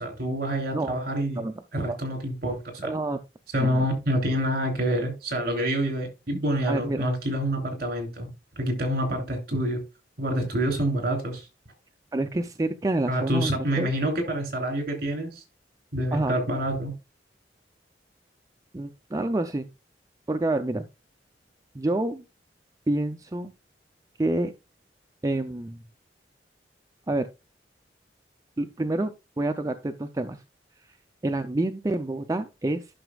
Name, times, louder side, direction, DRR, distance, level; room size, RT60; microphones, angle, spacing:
voice 1, 0.0-1.4 1.7-2.9 3.5-8.3 8.6-9.8 10.2-11.5 13.1-15.4 15.9-16.9, right 1 dB, 60° right, 3.2 m, -27 dB
voice 2, 2.8-3.2 3.6-3.8 6.3-6.4 6.7-7.0 12.1-13.9 16.1-16.4 18.7-19.7 20.3-20.9 21.7-22.2 22.9-23.5 24.2-24.5 25.2-25.8 27.1-27.3 28.6-30.4 31.2-32.9, right 2 dB, 20° right, 0.4 m, -28 dB
11.0 x 6.0 x 2.3 m
head